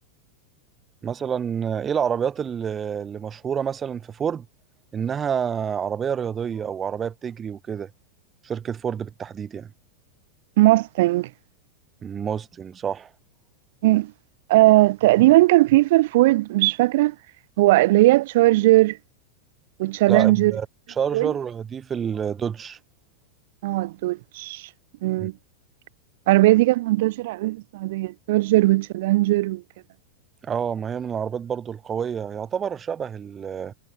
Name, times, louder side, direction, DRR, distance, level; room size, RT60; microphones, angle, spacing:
voice 1, 1.0-4.5 4.9-7.9 8.4-9.7 12.0-13.1 20.1-20.7 21.0-22.8 25.2-25.3 30.4-33.7, right 7 dB, 20° right, 1.0 m, -28 dB
voice 2, 10.6-11.3 13.8-14.1 14.5-17.1 17.6-19.0 19.8-20.5 21.1-21.3 23.6-24.6 25.0-25.3 26.3-29.6, right 18 dB, 50° right, 0.6 m, -18 dB
figure-of-eight pair, 90°, 0 cm